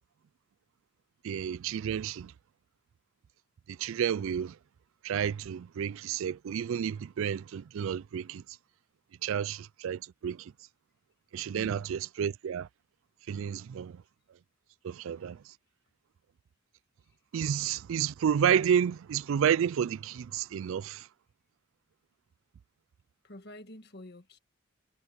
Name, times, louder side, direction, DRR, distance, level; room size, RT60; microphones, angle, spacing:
voice 1, 1.2-2.3 3.7-4.6 5.0-8.4 9.2-10.5 11.3-12.7 13.3-14.0 14.8-15.5 17.3-21.1, right 8 dB, 65° right, 0.3 m, -30 dB
voice 2, 11.5-11.9 23.2-24.4, left 1 dB, 45° left, 1.7 m, -47 dB
head